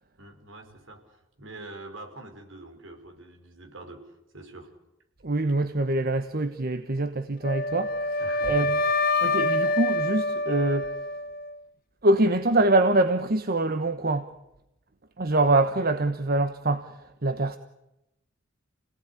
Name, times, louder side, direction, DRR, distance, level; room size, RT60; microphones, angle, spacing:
voice 1, 0.2-4.7 8.2-8.8, right 2 dB, 70° right, 3 dB, 5.4 m, -45 dB
voice 2, 5.2-8.8 9.2-10.9 12.0-14.3 15.2-17.6, right 2 dB, 50° right, 10 dB, 1.2 m, -24 dB
Wind instrument woodwind instrument, 7.4-11.5, left 2 dB, 45° left, 1.8 m, -26 dB
29.5 x 18.0 x 9.8 m, 0.90 s
head